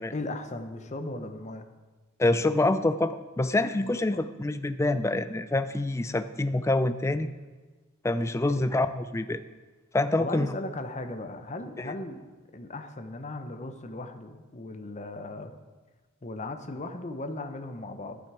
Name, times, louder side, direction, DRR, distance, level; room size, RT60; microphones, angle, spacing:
voice 1, 0.1-1.7 4.1-4.2 7.2-7.3 8.4-8.5 10.2-15.5 16.2-18.2, left 2 dB, 30° left, 7 dB, 0.7 m, -37 dB
voice 2, 2.2-7.3 8.0-9.4 9.9-10.5 11.8-11.9, left 2 dB, 15° left, 12 dB, 0.3 m, -26 dB
12.0 x 8.0 x 4.8 m, 1.3 s
head